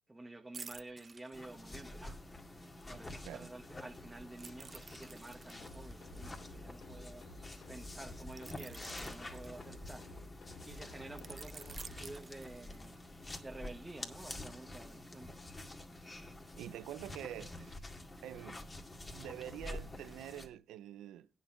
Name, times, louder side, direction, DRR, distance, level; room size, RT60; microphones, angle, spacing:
voice 1, 0.0-2.2 2.5-13.0 13.4-15.5, right 2 dB, 15° right, 1.2 m, -51 dB
sound 1, 0.5-2.1 4.4-7.1 8.3-10.2 11.2-13.0 13.5-13.7, right 4 dB, 35° right, 0.6 m, -52 dB
sound 2, 1.3-20.5, left 1 dB, 25° left, 2.0 m, -48 dB
sound 3, 5.6-12.0, left 2 dB, 70° left, 3.1 m, -53 dB
voice 2, 16.6-17.8 18.2-18.6 19.1-21.3, right 12 dB, 85° right, 0.6 m, -46 dB
9.3 x 7.2 x 5.9 m
cardioid pair, 90°, 0 cm